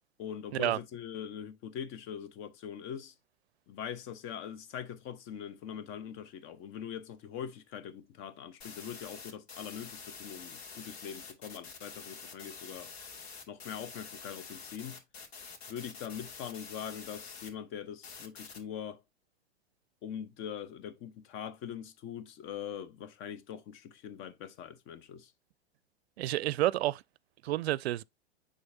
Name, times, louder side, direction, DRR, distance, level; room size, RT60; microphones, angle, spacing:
voice 1, 0.2-3.1 3.7-12.9 13.5-15.0 15.7-19.0 20.0-25.3, left 8 dB, 40° left, 1.0 m, -42 dB
sound 1, 8.6-17.5 18.0-18.6, left 5 dB, 70° left, 2.4 m, -47 dB
voice 2, 26.2-27.0 27.4-28.0, right 14 dB, 70° right, 0.5 m, -29 dB
9.5 x 4.0 x 2.7 m
hypercardioid pair, 105°, 33 cm